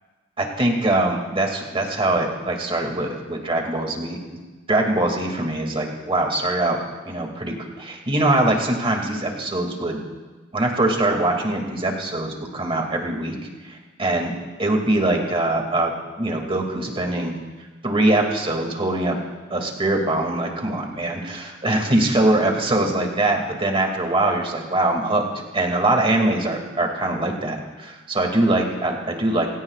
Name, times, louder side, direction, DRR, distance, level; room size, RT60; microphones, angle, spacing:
voice 1, 0.4-4.2 4.7-6.8 7.0-10.0 10.5-13.4 13.6-14.3 14.6-17.4 17.8-19.2 19.5-25.2 25.5-29.5, right 2 dB, 25° right, 2 dB, 2.3 m, -22 dB
27.0 x 17.5 x 2.4 m, 1.3 s
head